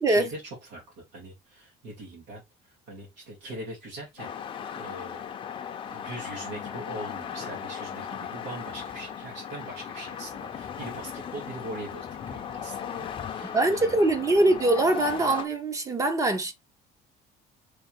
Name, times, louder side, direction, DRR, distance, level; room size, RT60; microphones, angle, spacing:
voice 1, 0.1-4.3 4.8-5.2 5.8-14.0, right 1 dB, 85° right, 2.1 m, -41 dB
sound 1, 4.2-15.5, left 8 dB, 30° left, 0.6 m, -37 dB
voice 2, 13.5-16.5, right 2 dB, 20° right, 0.7 m, -23 dB
3.4 x 3.4 x 4.3 m
cardioid pair, 170°, 18 cm